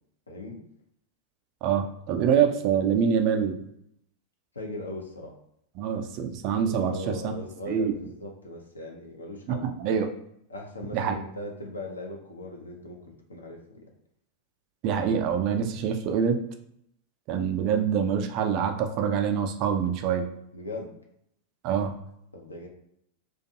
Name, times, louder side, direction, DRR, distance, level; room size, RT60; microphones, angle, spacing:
voice 1, 0.3-0.6 4.5-5.4 6.6-9.7 10.5-13.9 20.5-20.9 22.3-22.7, left 2 dB, 75° left, 1 dB, 0.6 m, -39 dB
voice 2, 1.6-3.6 5.8-7.3 7.7-7.9 9.5-10.1 10.9-11.1 14.8-16.4 17.3-20.2 21.6-21.9, right 7 dB, 40° right, 5 dB, 0.4 m, -25 dB
2.5 x 2.3 x 2.7 m, 0.74 s
figure-of-eight pair, 90°, 0 cm